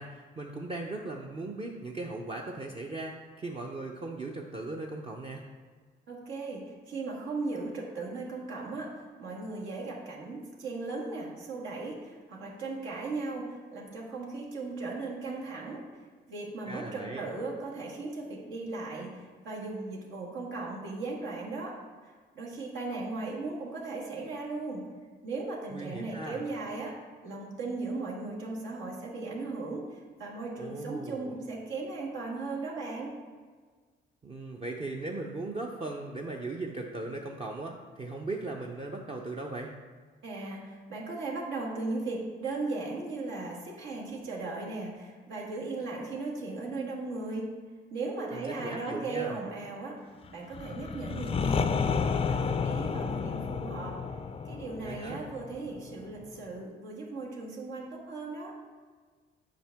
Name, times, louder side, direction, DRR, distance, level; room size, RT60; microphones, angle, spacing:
voice 1, 0.0-5.4 16.7-17.3 25.7-26.4 30.6-31.4 34.2-39.7 48.3-49.4 54.8-55.2, right 2 dB, 30° right, 0 dB, 0.6 m, -38 dB
voice 2, 6.1-15.8 16.3-21.7 22.3-24.8 25.2-26.9 27.2-29.9 30.2-33.1 40.2-47.5 47.9-50.0 50.3-51.7 52.1-54.0 54.4-58.5, right 3 dB, 80° right, -4 dB, 1.6 m, -37 dB
sound 1, 50.5-56.3, left 5 dB, 30° left, 0.4 m, -31 dB
7.5 x 5.0 x 3.5 m, 1.5 s
cardioid pair, 90°, 20 cm